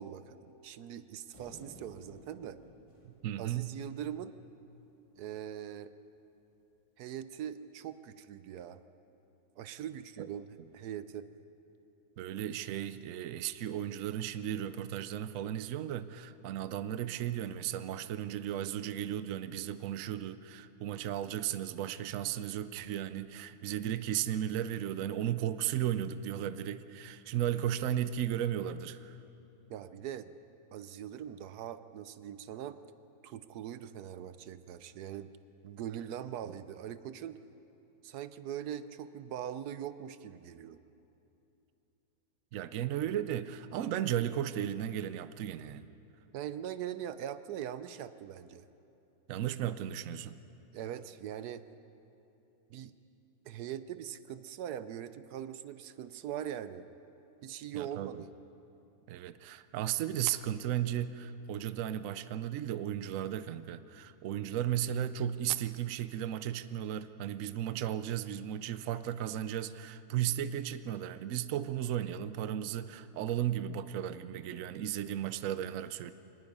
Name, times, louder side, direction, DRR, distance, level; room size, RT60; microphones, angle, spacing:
voice 1, 0.0-2.6 3.4-4.4 5.1-5.9 7.0-8.8 9.6-11.3 29.7-30.3 30.7-32.8 33.2-35.3 35.6-37.4 38.0-40.8 46.3-48.6 50.7-51.6 52.7-52.9 53.4-56.9 57.4-58.3, right 10 dB, 85° right, 13 dB, 1.2 m, -41 dB
sound 1, 1.3-4.7, equal, 20° left, 1.8 m, -56 dB
voice 2, 3.0-3.8 10.2-10.3 12.2-29.2 36.4-36.5 42.5-45.9 49.3-50.4 57.7-58.1 59.1-76.1, right 11 dB, 65° right, 13 dB, 1.0 m, -35 dB
24.5 x 19.5 x 5.4 m, 2.9 s
omnidirectional pair, 1.6 m